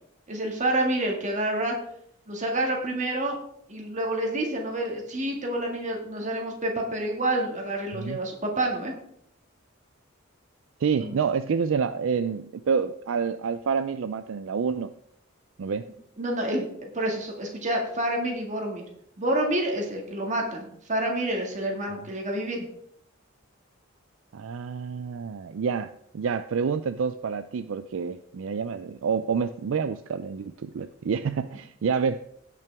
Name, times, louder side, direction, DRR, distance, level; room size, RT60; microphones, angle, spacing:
voice 1, 0.3-1.8 2.3-3.4 3.7-8.9 11.0-11.1 16.2-18.9 19.2-22.6, right 1 dB, 35° right, 0 dB, 2.0 m, -28 dB
voice 2, 10.8-14.9 15.6-15.9 21.9-22.1 24.3-32.2, right 6 dB, 70° right, 11 dB, 0.4 m, -28 dB
16.5 x 5.9 x 3.5 m, 0.72 s
head